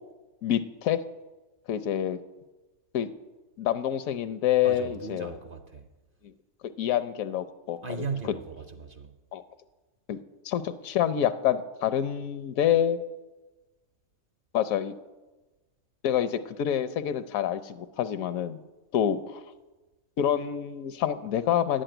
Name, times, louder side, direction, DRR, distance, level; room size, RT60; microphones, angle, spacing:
voice 1, 0.4-1.0 1.7-2.2 2.9-3.1 3.6-5.4 6.6-7.8 9.3-9.4 10.1-13.0 14.5-14.9 16.0-18.6 18.9-19.4 20.2-21.8, left 10 dB, 75° left, 1.0 m, -27 dB
voice 2, 4.6-5.9 7.8-9.1, right 4 dB, 45° right, 0.8 m, -37 dB
10.5 x 7.7 x 9.0 m
omnidirectional pair, 1.5 m